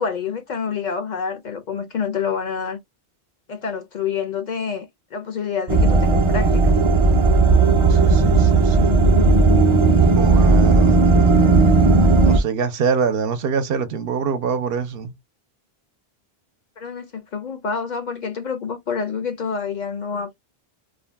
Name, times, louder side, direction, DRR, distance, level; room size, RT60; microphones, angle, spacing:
voice 1, 0.0-2.8 3.5-6.7 16.8-20.4, left 6 dB, 55° left, 0.5 m, -27 dB
sound 1, 5.7-12.4, right 3 dB, 40° right, 0.4 m, -15 dB
voice 2, 7.9-9.0 10.0-11.1 12.2-15.1, right 6 dB, 70° right, 0.8 m, -25 dB
2.5 x 2.1 x 3.3 m
omnidirectional pair, 1.0 m